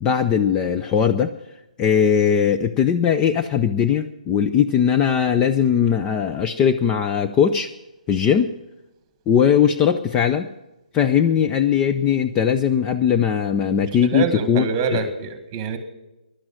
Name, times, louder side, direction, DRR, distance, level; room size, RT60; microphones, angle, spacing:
voice 1, 0.0-1.3 1.8-7.7 8.1-8.5 9.3-10.5 10.9-14.6 14.9-15.1, left 8 dB, 15° left, 6 dB, 0.5 m, -19 dB
voice 2, 14.0-15.8, right 6 dB, 25° right, 11 dB, 1.6 m, -25 dB
16.5 x 11.5 x 6.3 m, 1.0 s
figure-of-eight pair, 135°, 4 cm